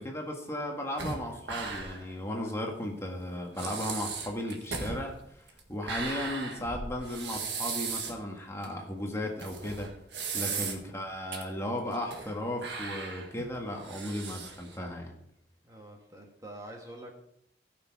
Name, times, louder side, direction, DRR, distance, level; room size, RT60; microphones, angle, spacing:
voice 1, 0.0-5.4 5.7-9.9 10.3-15.2, left 1 dB, 15° left, 1 dB, 1.6 m, -35 dB
sound 1, 1.0-2.1 2.5-2.6 3.2-3.3 3.6-8.2 8.6-8.7 9.4-11.0 11.3-11.4 11.9-12.3 12.6-14.8, right 5 dB, 85° right, 1.6 m, -37 dB
voice 2, 15.6-17.2, right 1 dB, 20° right, 1 dB, 1.5 m, -46 dB
15.0 x 6.3 x 4.7 m, 0.72 s
head